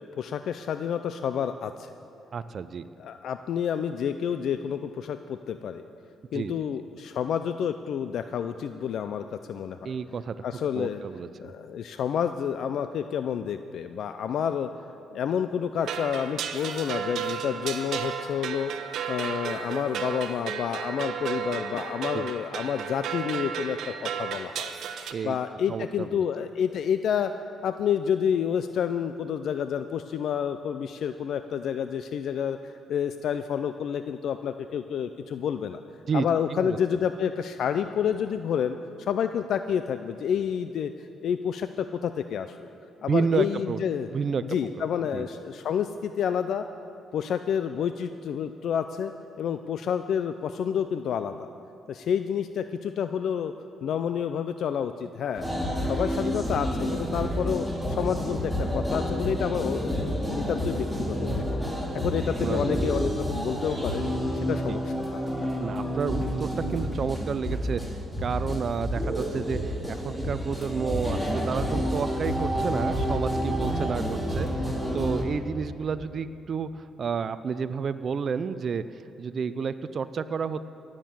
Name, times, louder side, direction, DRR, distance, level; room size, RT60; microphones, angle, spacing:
voice 1, 0.2-1.9 3.0-5.8 6.3-9.9 10.4-11.0 11.4-14.7 15.1-18.7 19.1-24.7 25.2-27.3 27.6-35.8 36.1-42.7 43.0-44.1 44.5-46.6 47.1-49.1 49.4-51.5 51.9-53.5 53.8-55.4 55.9-61.6 61.9-64.0 64.3-65.2, left 8 dB, 70° left, 10 dB, 0.4 m, -29 dB
voice 2, 2.3-2.9 6.3-6.7 9.8-10.4 10.7-11.5 22.1-22.3 25.1-25.4 25.7-26.2 36.1-36.8 43.1-43.8 44.1-44.6 45.1-45.3 56.2-56.3 62.4-62.6 64.7-64.8 65.6-78.8 79.2-80.6, right 6 dB, 50° right, 12 dB, 0.5 m, -31 dB
sound 1, 15.8-25.1, right 7 dB, 75° right, 0.9 m, -33 dB
sound 2, 55.3-75.2, equal, 5° left, 2.4 m, -29 dB
17.5 x 7.5 x 7.5 m, 2.8 s
cardioid pair, 90°, 0 cm